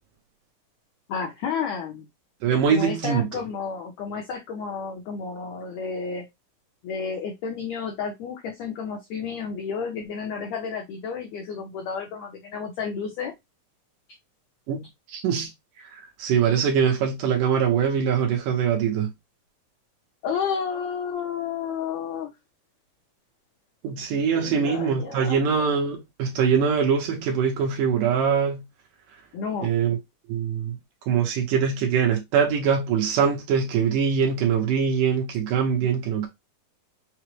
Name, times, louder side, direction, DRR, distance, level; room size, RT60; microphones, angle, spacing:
voice 1, 1.1-2.1 2.7-6.2 6.8-13.3 20.2-22.3 24.3-25.4 29.3-29.7, left 6 dB, 90° left, 1.5 m, -31 dB
voice 2, 2.4-3.3 14.7-14.8 15.1-15.5 16.0-19.1 23.8-28.6 29.6-30.0 30.3-30.8 31.1-36.3, right 7 dB, 75° right, 2.2 m, -23 dB
5.9 x 2.0 x 3.0 m
omnidirectional pair, 4.0 m